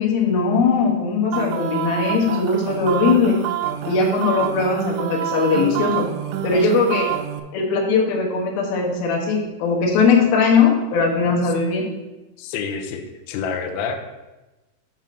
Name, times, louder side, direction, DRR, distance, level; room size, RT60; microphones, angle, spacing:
voice 1, 0.0-3.4 3.8-6.1 6.4-7.1 7.5-11.9, left 4 dB, 70° left, -1 dB, 2.5 m, -19 dB
sound 1, 1.3-7.4, right 10 dB, 85° right, 2.8 m, -27 dB
voice 2, 12.4-14.1, left 6 dB, 90° left, 3 dB, 2.2 m, -28 dB
7.3 x 3.6 x 5.8 m, 1.0 s
omnidirectional pair, 5.5 m